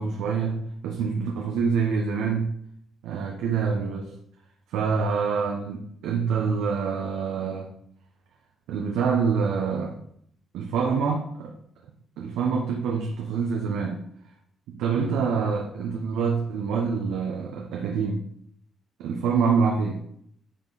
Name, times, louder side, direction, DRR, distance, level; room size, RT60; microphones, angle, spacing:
voice 1, 0.0-2.5 3.0-4.1 4.7-7.7 8.7-10.0 10.5-11.5 12.2-14.0 14.7-18.2 19.0-20.0, right 5 dB, 90° right, 0 dB, 1.1 m, -26 dB
9.9 x 5.1 x 4.2 m, 0.69 s
cardioid pair, 90°, 0 cm